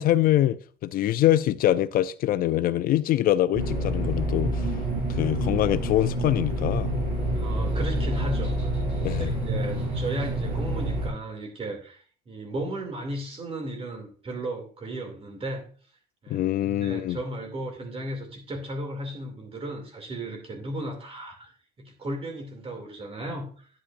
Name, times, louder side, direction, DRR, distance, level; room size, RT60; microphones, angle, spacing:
voice 1, 0.0-4.7 5.1-6.9 9.0-9.3 16.3-17.2, left 13 dB, 60° left, 0.4 m, -24 dB
sound 1, 3.5-11.1, right 1 dB, 85° right, 4.3 m, -28 dB
voice 2, 7.3-8.7 9.1-15.7 16.2-21.5 21.8-23.7, right 1 dB, 35° right, 2.6 m, -35 dB
9.7 x 8.6 x 2.5 m
cardioid pair, 110°, 17 cm